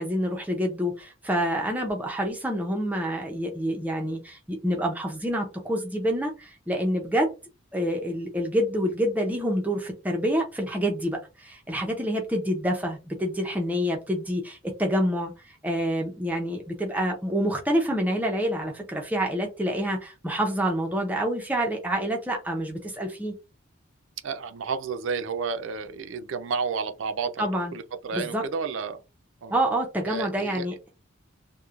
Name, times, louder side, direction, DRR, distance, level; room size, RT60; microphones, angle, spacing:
voice 1, 0.0-7.3 7.7-23.3 27.4-27.7 28.1-28.4 29.5-30.7, equal, 10° right, 0.4 m, -27 dB
voice 2, 24.2-29.0 29.4-29.5 30.0-30.7, right 5 dB, 65° right, 0.4 m, -31 dB
2.9 x 2.1 x 2.3 m
head